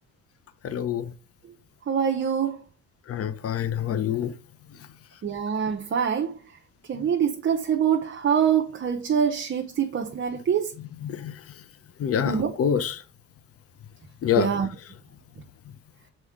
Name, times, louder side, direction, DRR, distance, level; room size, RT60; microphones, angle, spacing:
voice 1, 0.6-1.1 3.1-4.3 11.0-11.4 12.0-13.0 14.2-14.5, left 8 dB, 50° left, 0.7 m, -26 dB
voice 2, 1.9-2.6 5.2-6.4 6.9-10.7 12.3-12.5 14.4-14.7, right 8 dB, 40° right, 0.7 m, -24 dB
6.2 x 4.5 x 3.6 m
cardioid pair, 90°, 30 cm